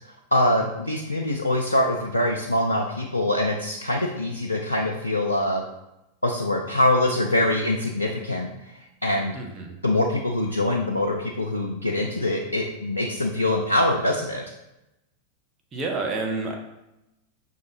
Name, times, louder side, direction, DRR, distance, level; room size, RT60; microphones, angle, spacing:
voice 1, 0.3-5.6 6.2-8.5 9.0-9.4 9.8-14.4, left 1 dB, 85° left, 0 dB, 0.3 m, -24 dB
voice 2, 9.3-9.8 15.7-16.5, right 3 dB, 25° right, 1 dB, 0.8 m, -29 dB
5.2 x 2.8 x 2.7 m, 0.93 s
figure-of-eight pair, 90°, 0 cm